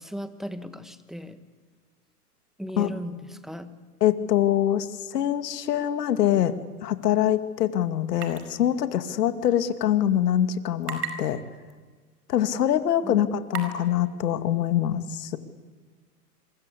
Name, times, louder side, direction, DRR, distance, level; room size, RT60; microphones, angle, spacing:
voice 1, 0.0-1.4 2.6-3.7 13.0-13.3, equal, ahead, 11 dB, 1.6 m, -37 dB
voice 2, 4.0-6.6 6.8-11.4 12.3-15.4, left 11 dB, 75° left, 10 dB, 2.3 m, -24 dB
sound 1, 8.2-8.4 8.7-8.8 10.8-11.1 11.7-11.8 12.5-12.6 13.5-13.8, right 7 dB, 80° right, 5.1 m, -33 dB
27.0 x 23.5 x 8.4 m, 1.5 s
hypercardioid pair, 130°, 48 cm